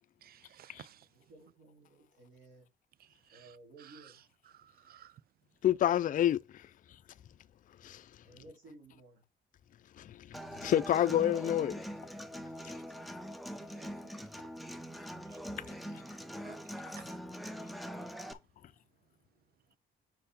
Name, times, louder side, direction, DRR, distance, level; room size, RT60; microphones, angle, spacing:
voice 1, 0.2-1.1 3.0-4.1 4.5-5.2 13.6-14.2 15.3-15.4 15.8-16.0 16.4-16.6 16.9-17.2 17.6-17.7, right 11 dB, 50° right, 0.4 m, -57 dB
voice 2, 0.7-2.7 3.3-4.2 8.2-9.3 12.5-13.5, right 2 dB, 85° right, 3.3 m, -58 dB
voice 3, 5.6-6.4 7.8-8.0 10.0-11.8, left 11 dB, 45° left, 0.4 m, -28 dB
Human voice / Acoustic guitar, 10.3-18.3, equal, ahead, 0.7 m, -43 dB
4.7 x 4.6 x 5.2 m
cardioid pair, 90°, 20 cm